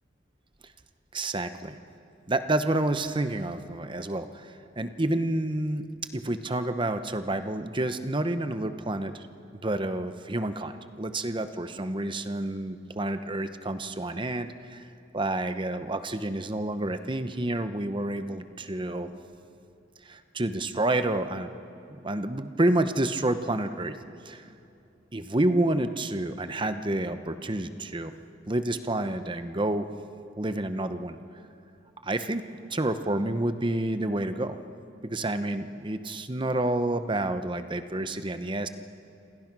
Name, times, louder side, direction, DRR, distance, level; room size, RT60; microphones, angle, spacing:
voice 1, 1.1-1.8 2.3-5.9 6.1-9.2 9.6-14.9 15.1-19.1 20.0-21.5 21.9-24.0 24.2-24.5 25.1-28.1 28.5-29.9 30.4-31.2 32.0-32.4 32.7-34.6 35.0-38.7, right 1 dB, 25° right, 10 dB, 0.9 m, -29 dB
28.0 x 26.0 x 6.1 m, 2.7 s
head